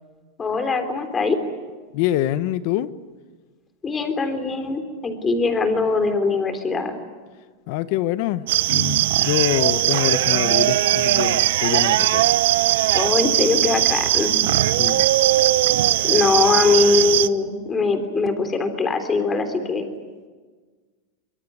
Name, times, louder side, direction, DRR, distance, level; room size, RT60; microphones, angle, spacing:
voice 1, 0.4-1.4 3.8-6.9 12.9-14.3 16.0-19.9, left 4 dB, 15° left, 3.6 m, -21 dB
voice 2, 1.9-2.9 7.7-12.2 14.8-15.1, left 12 dB, 55° left, 1.2 m, -25 dB
sound 1, 8.5-17.3, right 14 dB, 75° right, 0.9 m, -19 dB
24.5 x 22.5 x 9.5 m
supercardioid pair, 145°, 0 cm